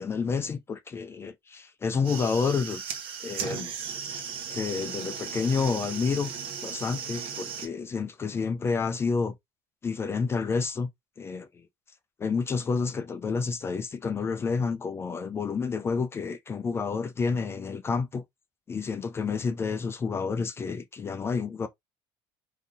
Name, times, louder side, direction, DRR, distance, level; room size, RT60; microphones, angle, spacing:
voice 1, 0.0-2.8 3.2-3.7 4.5-6.3 6.6-9.3 9.8-10.9 11.2-11.6 12.2-18.2 18.7-21.7, left 5 dB, 25° left, 0.4 m, -29 dB
sound 1, 1.9-7.7, right 6 dB, 55° right, 1.0 m, -36 dB
3.6 x 2.7 x 2.5 m
cardioid pair, 120°, 11 cm